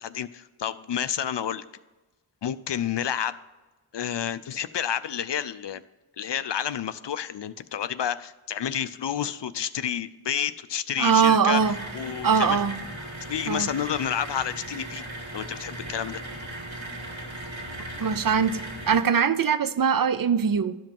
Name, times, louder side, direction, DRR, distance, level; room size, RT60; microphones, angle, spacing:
voice 1, 0.0-1.6 2.4-3.4 3.9-5.8 6.2-11.6 11.9-12.6 13.3-15.0 15.3-16.2, left 9 dB, 60° left, 0.5 m, -30 dB
voice 2, 11.0-11.8 12.2-12.8 13.5-13.7 18.0-20.8, right 6 dB, 45° right, 0.5 m, -22 dB
sound 1, 11.6-19.0, right 1 dB, 65° right, 2.4 m, -37 dB
12.0 x 5.2 x 5.3 m
wide cardioid pair, 55°, 49 cm